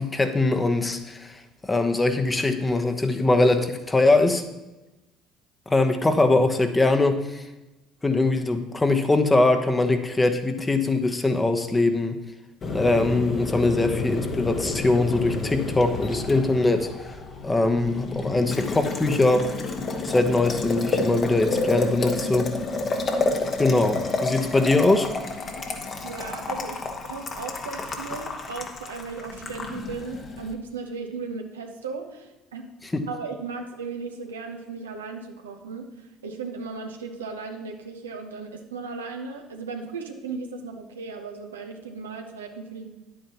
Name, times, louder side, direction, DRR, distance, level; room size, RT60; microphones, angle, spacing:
voice 1, 0.0-4.4 5.7-7.4 8.0-12.2 12.7-17.1 17.4-19.5 20.0-22.5 23.6-25.1 32.9-33.0, left 2 dB, 20° left, 6 dB, 1.1 m, -22 dB
Boiling, 12.6-30.5, left 3 dB, 40° left, 1.4 m, -30 dB
voice 2, 26.0-32.7 33.1-42.9, right 4 dB, 90° right, 3 dB, 0.9 m, -36 dB
9.9 x 8.8 x 3.0 m, 1.0 s
hypercardioid pair, 65°, 0 cm